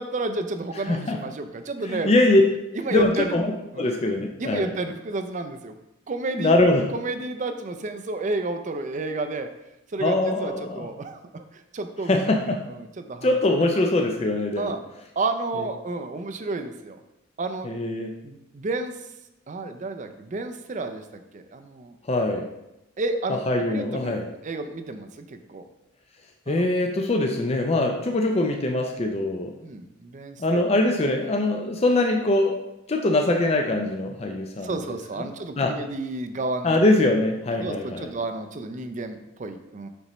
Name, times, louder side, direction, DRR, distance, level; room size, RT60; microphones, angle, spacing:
voice 1, 0.0-2.1 2.7-3.3 3.7-3.9 4.4-5.7 6.1-6.6 6.9-9.5 9.9-13.3 14.6-14.8 15.2-17.0 17.4-17.7 18.2-18.9 19.5-21.9 23.0-23.4 23.7-24.2 24.4-25.6 26.5-26.7 29.6-30.6 34.6-36.7 37.6-39.9, right 3 dB, 35° right, 7 dB, 0.4 m, -31 dB
voice 2, 0.9-1.2 1.9-2.4 2.9-4.7 6.3-6.8 10.0-10.9 12.1-12.6 13.2-14.7 17.6-18.1 22.1-22.5 23.5-24.2 26.5-29.5 30.4-32.6 32.9-34.7 35.2-35.3 35.6-35.8 36.6-38.1, left 2 dB, 30° left, 3 dB, 0.5 m, -22 dB
6.7 x 5.4 x 3.0 m, 0.92 s
head